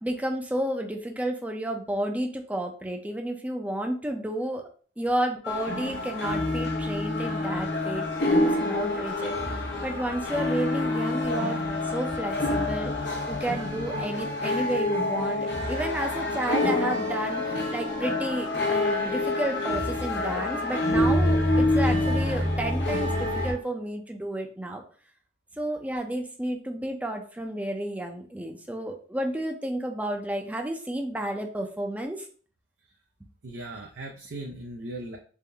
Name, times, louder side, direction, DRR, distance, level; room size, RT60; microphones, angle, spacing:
voice 1, 0.0-4.7 5.0-8.0 8.3-12.9 13.3-24.8 25.6-32.3, right 1 dB, 10° right, 3 dB, 0.5 m, -31 dB
sound 1, 5.4-23.5, left 2 dB, 70° left, 0.9 m, -27 dB
voice 2, 33.4-35.2, right 2 dB, 80° right, -1 dB, 0.6 m, -38 dB
3.6 x 2.6 x 3.3 m, 0.42 s
head